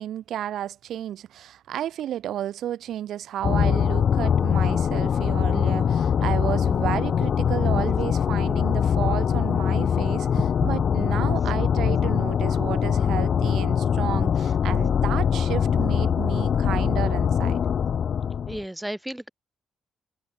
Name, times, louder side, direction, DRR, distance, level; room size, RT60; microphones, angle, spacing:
voice 1, 0.0-10.3 10.6-17.6, right 11 dB, 75° right, 3.1 m, -32 dB
sound 1, 3.4-18.6, left 7 dB, 55° left, 0.7 m, -23 dB
voice 2, 10.4-10.7 18.5-19.3, right 1 dB, 5° right, 1.2 m, -31 dB
cardioid pair, 90°, 0 cm